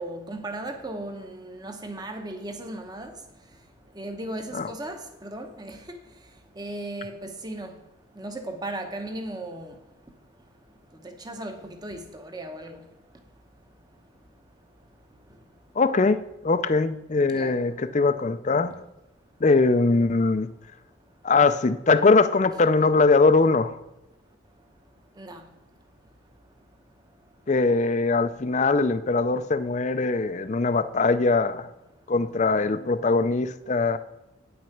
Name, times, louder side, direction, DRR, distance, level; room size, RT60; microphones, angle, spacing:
voice 1, 0.0-3.2 3.9-6.0 6.6-7.8 8.1-9.8 11.0-12.8 17.3-17.6 22.8-22.9 25.2-25.4, right 1 dB, 20° right, 0.9 m, -36 dB
voice 2, 15.8-18.8 19.4-20.5 21.2-23.8 27.5-31.7 32.1-34.0, left 3 dB, 35° left, 0.4 m, -21 dB
9.5 x 6.2 x 5.9 m
head